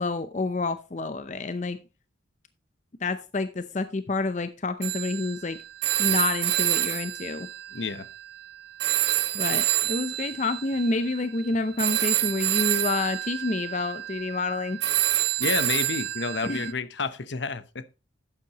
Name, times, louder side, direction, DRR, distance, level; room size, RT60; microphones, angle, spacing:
voice 1, 0.0-1.8 3.0-5.6 6.0-7.5 9.3-14.8 16.4-16.7, left 3 dB, 35° left, 0.6 m, -28 dB
Telephone, 4.8-8.5 8.8-16.7, right 15 dB, 55° right, 0.6 m, -28 dB
voice 2, 7.7-8.1 15.4-17.8, left 4 dB, 65° left, 0.8 m, -30 dB
12.0 x 8.6 x 3.0 m
head